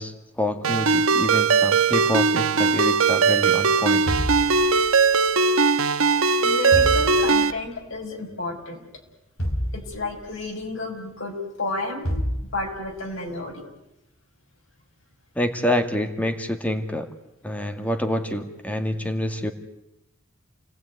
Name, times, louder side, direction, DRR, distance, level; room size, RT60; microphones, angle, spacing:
voice 1, 0.0-4.1 15.4-17.1 17.4-19.5, left 1 dB, 5° left, 7 dB, 2.1 m, -27 dB
Ringtone, 0.6-7.5, right 5 dB, 80° right, 1.1 m, -19 dB
sound 1, 4.1-5.2 6.7-7.7 9.4-10.5 12.1-13.0, equal, 80° left, 3.8 m, -29 dB
voice 2, 6.4-8.8 9.7-12.2 12.5-13.6, left 2 dB, 65° left, 2 dB, 6.0 m, -31 dB
29.5 x 19.0 x 9.7 m, 0.90 s
head